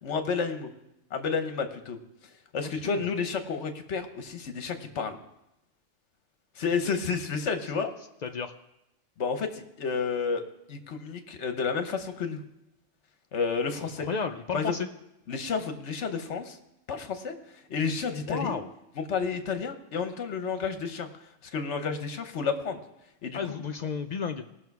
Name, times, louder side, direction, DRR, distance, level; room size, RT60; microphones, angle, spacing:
voice 1, 0.0-0.7 1.1-2.0 2.5-5.2 6.6-7.9 9.2-10.4 10.7-12.4 13.3-14.1 14.5-14.7 15.3-16.6 16.9-17.3 17.7-18.6 19.0-21.1 21.5-22.8 23.2-23.4, left 5 dB, 65° left, 8 dB, 1.2 m, -30 dB
voice 2, 8.2-8.5 14.0-14.9 18.2-18.7 23.3-24.4, left 5 dB, 90° left, 6 dB, 0.3 m, -32 dB
18.0 x 6.3 x 4.7 m, 0.88 s
omnidirectional pair, 1.3 m